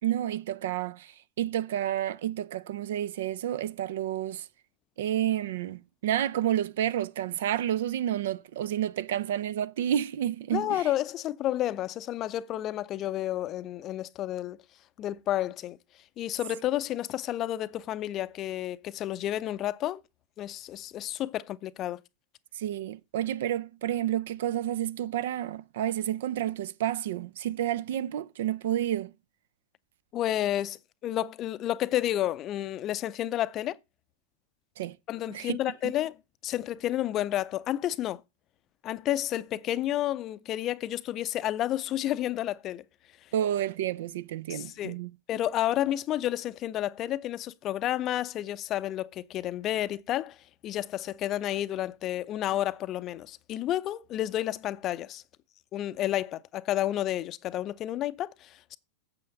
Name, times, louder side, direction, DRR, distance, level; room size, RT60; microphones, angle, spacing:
voice 1, 0.0-4.5 5.0-10.9 22.6-29.1 34.8-35.0 35.3-35.6 35.8-35.9 43.3-45.1, right 11 dB, 55° right, 0.5 m, -30 dB
voice 2, 10.5-14.6 15.0-15.8 16.2-20.0 20.4-22.0 30.1-33.8 35.1-36.1 36.4-38.2 38.8-42.8 44.5-45.0 45.3-50.4 50.6-55.2 55.7-58.8, left 13 dB, 35° left, 0.6 m, -31 dB
8.7 x 7.6 x 5.2 m
figure-of-eight pair, 90°, 0 cm